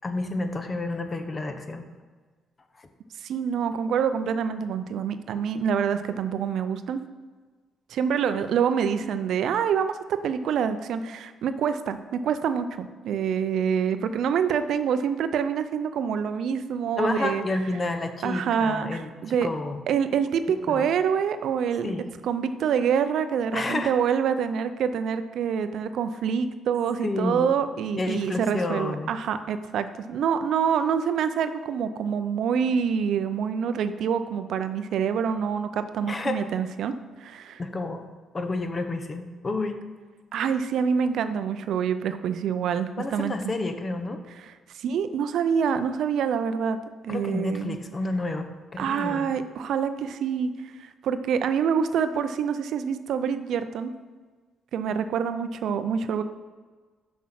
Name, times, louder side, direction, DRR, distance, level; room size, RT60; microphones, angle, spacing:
voice 1, 0.0-1.9 2.8-2.9 17.0-19.8 20.7-20.9 21.8-22.0 23.5-23.9 27.0-27.5 28.0-29.1 36.1-36.4 37.6-38.1 38.3-39.9 43.0-44.2 47.1-49.3, left 2 dB, 30° left, 8 dB, 0.8 m, -30 dB
voice 2, 3.2-7.0 7.9-17.4 18.2-19.5 19.9-21.9 22.2-36.9 37.2-37.6 40.3-43.4 44.7-46.8 47.0-47.8 48.8-50.5 50.8-53.9 54.7-56.2, right 7 dB, 75° right, 11 dB, 0.5 m, -26 dB
6.1 x 6.1 x 5.8 m, 1.4 s
cardioid pair, 90°, 0 cm